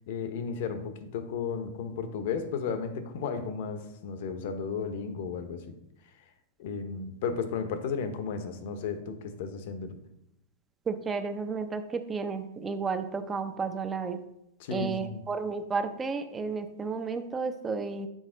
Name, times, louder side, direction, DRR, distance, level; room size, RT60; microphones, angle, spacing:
voice 1, 0.1-5.7 6.6-10.0 14.6-15.2, left 6 dB, 60° left, 9 dB, 0.8 m, -34 dB
voice 2, 10.9-14.2 14.7-18.1, right 4 dB, 20° right, 9 dB, 0.6 m, -32 dB
6.3 x 4.1 x 3.8 m, 0.81 s
hypercardioid pair, 120°, 0 cm